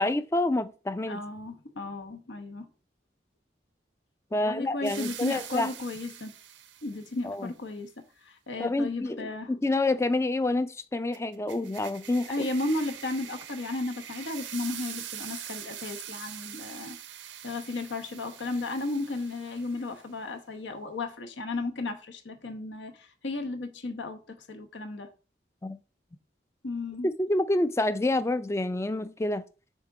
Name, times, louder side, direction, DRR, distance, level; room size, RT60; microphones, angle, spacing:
voice 1, 0.0-1.2 4.3-5.7 7.2-7.5 8.6-12.5 25.6-25.8 27.2-29.4, left 2 dB, 15° left, 0.3 m, -28 dB
voice 2, 1.1-2.7 4.3-6.3 6.8-7.9 8.2-9.5 12.3-17.0 17.4-25.1 26.6-27.1, left 2 dB, 80° left, 1.1 m, -34 dB
sound 1, 4.8-7.2 11.1-20.1, right 10 dB, 80° right, 0.7 m, -43 dB
6.4 x 3.7 x 4.9 m
head